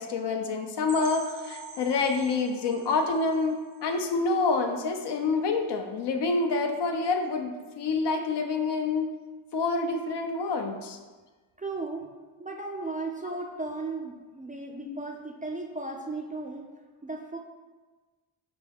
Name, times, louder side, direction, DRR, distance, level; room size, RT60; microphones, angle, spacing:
voice 1, 0.0-9.1 9.5-11.0 14.9-15.0, left 3 dB, 55° left, 5 dB, 0.6 m, -27 dB
sound 1, 0.9-4.5 4.9-5.1 5.4-5.5 6.0-6.1, right 3 dB, 45° right, 0.7 m, -45 dB
voice 2, 11.6-12.1 12.4-16.7 17.0-17.4, right 3 dB, 15° right, 1 dB, 0.4 m, -35 dB
5.2 x 2.2 x 3.4 m, 1.3 s
supercardioid pair, 50°, 49 cm